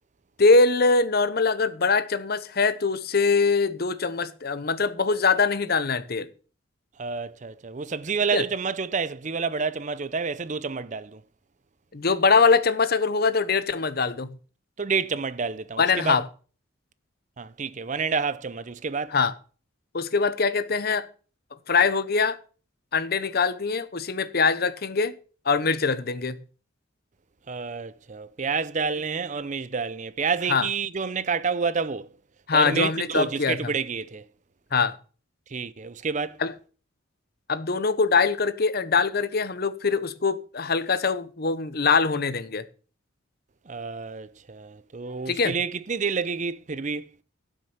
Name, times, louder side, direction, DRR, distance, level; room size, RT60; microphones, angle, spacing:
voice 1, 0.4-6.3 8.3-8.4 11.9-14.3 15.8-16.2 19.1-19.3 19.9-21.1 21.7-22.4 22.9-25.1 25.5-26.4 30.5-30.7 32.5-33.6 34.7-35.0 36.4-36.5 37.5-42.7 45.3-45.5, left 4 dB, 50° left, 0.8 m, -23 dB
voice 2, 7.0-11.2 14.8-16.2 17.4-19.2 27.5-32.1 32.5-34.3 35.5-36.4 43.7-47.1, right 5 dB, 35° right, 0.5 m, -29 dB
12.0 x 6.4 x 7.2 m
head